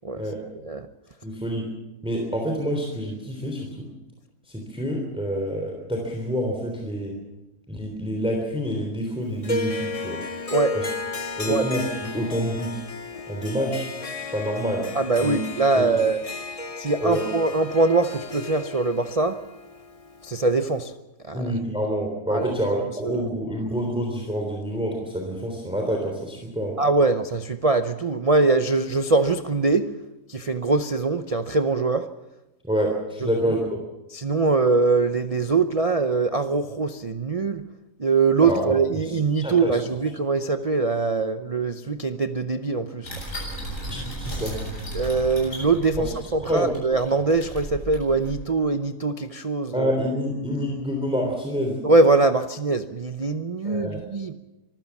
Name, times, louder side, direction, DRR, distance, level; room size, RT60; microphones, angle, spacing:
voice 1, 1.2-1.7 2.0-3.9 4.5-7.2 7.7-10.2 10.7-10.9 11.4-12.8 13.3-13.9 14.3-14.9 15.2-15.4 15.8-15.9 17.0-17.3 21.3-26.8 32.6-33.8 38.4-38.7 39.0-39.2 39.4-39.8 43.9-44.6 46.0-46.1 46.4-46.7 49.7-51.8 53.6-54.0, equal, 5° right, 1 dB, 3.4 m, -27 dB
Harp, 9.4-20.7, left 2 dB, 25° left, 0.9 m, -34 dB
voice 2, 14.9-16.2 16.8-19.4 20.2-20.9 21.2-21.5 22.3-22.5 23.0-23.2 26.8-29.8 30.3-32.1 33.2-33.3 34.1-37.6 38.0-43.1 44.9-49.9 51.8-54.3, right 3 dB, 40° right, 9 dB, 0.5 m, -22 dB
sound 1, 43.0-48.3, right 1 dB, 50° left, 8.5 m, -35 dB
25.0 x 15.0 x 7.2 m, 1.0 s
omnidirectional pair, 1.8 m